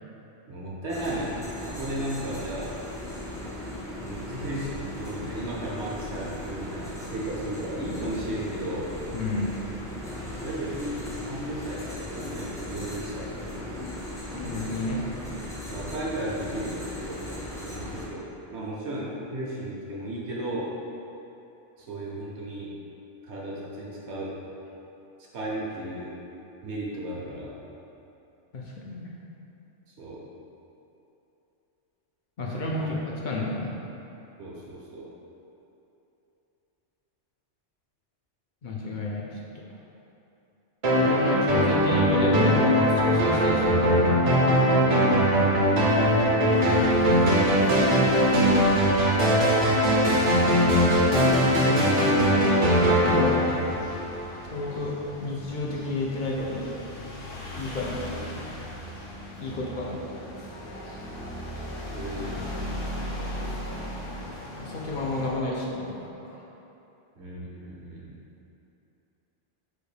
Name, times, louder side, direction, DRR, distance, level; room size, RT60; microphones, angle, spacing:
voice 1, 0.5-1.3 1.7-2.7 4.0-8.9 10.3-13.5 15.7-17.2 17.6-20.7 21.8-22.7 23.2-24.4 25.2-26.1 26.6-27.6 29.9-30.2 32.8-32.9 34.4-35.1 59.5-59.6 61.9-62.7 67.2-68.1, right 1 dB, 65° right, -4 dB, 1.1 m, -35 dB
sound 1, 0.9-18.1, left 1 dB, 5° left, 0.4 m, -37 dB
voice 2, 9.1-9.5 14.4-15.0 28.5-29.1 32.4-33.7 38.6-39.3 41.0-44.6 50.0-50.7 51.6-51.9 52.2-52.6 53.0-53.6 54.5-55.0 55.2-56.7 57.6-58.5 59.4-60.2 63.4-63.5 64.6-66.1, left 2 dB, 55° left, -3 dB, 0.6 m, -31 dB
sound 2, 40.8-54.4, equal, 40° right, 0.6 m, -21 dB
sound 3, 46.5-65.3, left 1 dB, 90° left, 1.2 m, -39 dB
4.2 x 2.6 x 4.9 m, 2.9 s
omnidirectional pair, 1.3 m